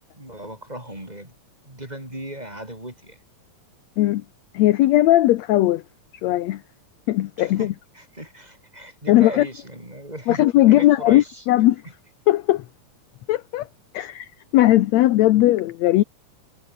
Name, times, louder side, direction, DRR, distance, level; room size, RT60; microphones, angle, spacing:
voice 1, 0.1-1.3 1.6-3.2 7.4-11.4, right 1 dB, 10° right, 6.6 m, -37 dB
voice 2, 4.5-5.8 6.2-6.6 7.1-7.7 9.1-9.5 10.3-11.8 12.3-12.6 13.3-13.7 13.9-16.0, left 15 dB, 75° left, 1.7 m, -18 dB
omnidirectional pair, 4.0 m